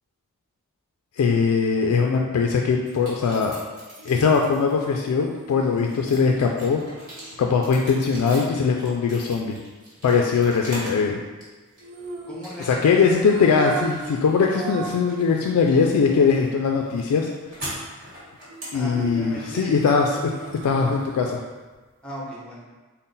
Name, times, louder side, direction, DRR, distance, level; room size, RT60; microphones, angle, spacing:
voice 1, 1.2-3.6 4.1-6.8 7.4-9.6 10.0-11.2 12.6-17.3 18.7-20.3 20.6-21.4, left 5 dB, 85° left, 1 dB, 0.3 m, -21 dB
sound 1, 2.8-4.8 5.3-11.1 11.4-12.0 12.4-13.0 13.3-21.2, right 1 dB, 40° right, 1.4 m, -41 dB
sound 2, 4.0-8.2 11.8-15.2 15.6-15.7 18.5-21.4 21.7-21.8, right 4 dB, 70° right, 0.6 m, -38 dB
voice 2, 12.3-13.2 18.7-19.8 22.0-22.6, left 1 dB, 5° left, -5 dB, 0.8 m, -36 dB
3.8 x 2.1 x 3.9 m, 1.3 s
head